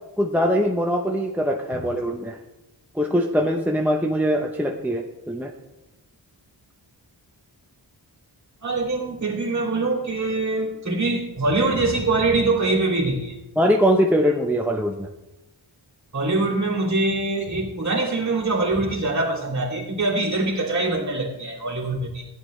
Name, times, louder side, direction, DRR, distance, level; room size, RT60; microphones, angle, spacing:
voice 1, 0.2-2.4 2.9-5.5 13.6-15.1, equal, 5° right, 2 dB, 0.7 m, -22 dB
voice 2, 8.6-13.3 16.1-22.2, right 2 dB, 40° right, -3 dB, 2.5 m, -23 dB
15.0 x 9.8 x 3.1 m, 1.0 s
wide cardioid pair, 95°, 44 cm